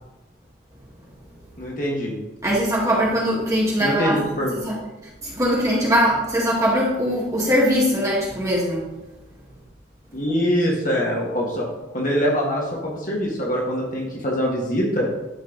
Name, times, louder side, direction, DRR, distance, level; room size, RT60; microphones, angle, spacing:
voice 1, 1.6-2.2 3.8-4.5 10.1-11.7 11.9-15.1, equal, 45° left, -2 dB, 1.7 m, -23 dB
voice 2, 2.4-4.1 4.5-4.8 5.2-8.8, equal, 15° right, -5 dB, 1.9 m, -21 dB
10.5 x 4.3 x 4.0 m, 1.0 s
head